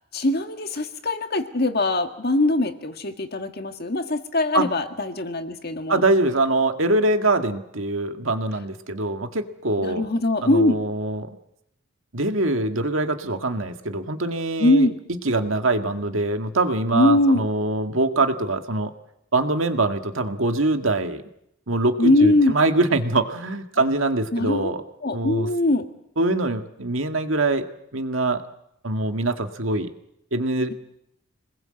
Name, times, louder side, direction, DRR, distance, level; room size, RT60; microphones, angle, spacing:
voice 1, 0.1-6.0 9.8-10.8 14.6-15.0 16.9-17.5 22.0-22.6 24.3-24.7 25.0-25.9, left 2 dB, 50° left, 7 dB, 1.8 m, -21 dB
voice 2, 5.9-10.1 10.4-11.3 12.1-18.9 19.3-21.2 21.7-24.8 25.1-25.5 26.2-27.7 27.9-28.4 28.8-29.9 30.3-30.7, right 2 dB, 80° right, 6 dB, 1.9 m, -23 dB
26.5 x 20.5 x 7.8 m, 0.81 s
head